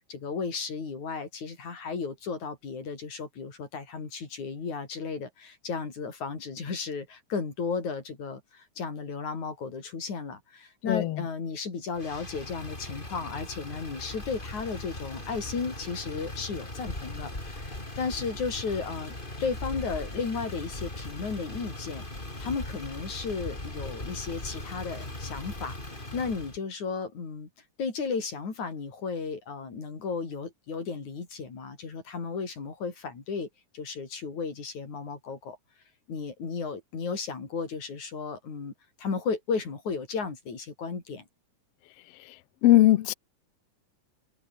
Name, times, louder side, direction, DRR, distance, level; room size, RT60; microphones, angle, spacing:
voice 1, 0.1-22.0 22.4-27.5 27.8-33.5 33.7-35.6 36.1-38.7 39.0-41.2, left 5 dB, 60° left, 6.1 m, -34 dB
voice 2, 10.9-11.2 42.6-43.1, left 14 dB, 75° left, 1.4 m, -19 dB
Motor vehicle (road), 11.9-26.6, left 2 dB, 15° left, 4.4 m, -39 dB
omnidirectional pair, 3.8 m